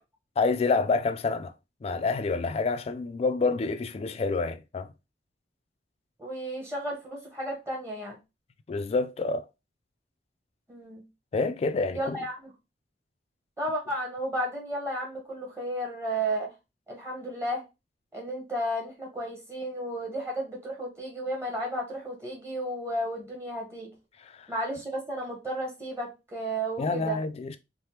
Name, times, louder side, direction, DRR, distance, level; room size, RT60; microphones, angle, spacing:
voice 1, 0.4-1.5 1.8-4.9 8.7-9.4 11.3-12.2 24.2-24.5 26.8-27.6, left 4 dB, 35° left, 0.3 m, -28 dB
voice 2, 6.2-8.2 10.7-11.0 11.9-12.5 13.6-16.5 16.9-17.6 18.1-23.9 24.5-27.2, right 1 dB, 15° right, 0.9 m, -33 dB
3.3 x 2.1 x 2.8 m
head